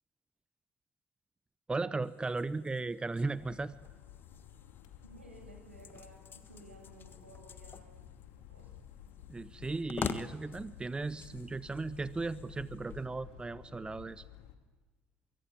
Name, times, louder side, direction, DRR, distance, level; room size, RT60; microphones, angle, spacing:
voice 1, 1.7-3.7 9.3-14.2, right 3 dB, 15° right, 17 dB, 0.8 m, -36 dB
sound 1, 2.0-13.1, left 7 dB, 35° left, 1.4 m, -47 dB
sound 2, 3.2-14.5, left 11 dB, 65° left, 2.5 m, -53 dB
voice 2, 5.0-7.9 8.5-8.7, right 2 dB, 90° right, 2 dB, 7.3 m, -55 dB
24.0 x 23.5 x 8.8 m, 1.2 s
figure-of-eight pair, 65°, 6 cm